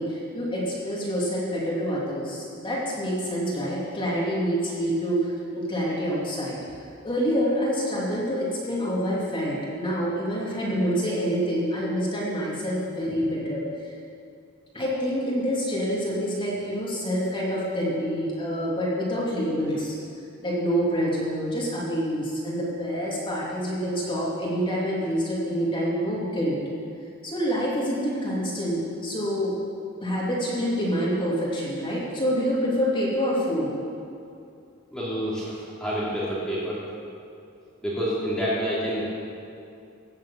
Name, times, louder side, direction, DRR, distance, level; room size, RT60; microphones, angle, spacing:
voice 1, 0.0-6.6 7.0-13.9 14.7-20.0 20.4-26.6 27.2-29.5 30.0-33.7, equal, 25° left, -6 dB, 2.7 m, -27 dB
voice 2, 34.9-36.8 37.8-39.2, equal, 5° left, -9 dB, 2.8 m, -28 dB
17.0 x 7.4 x 7.5 m, 2.5 s
head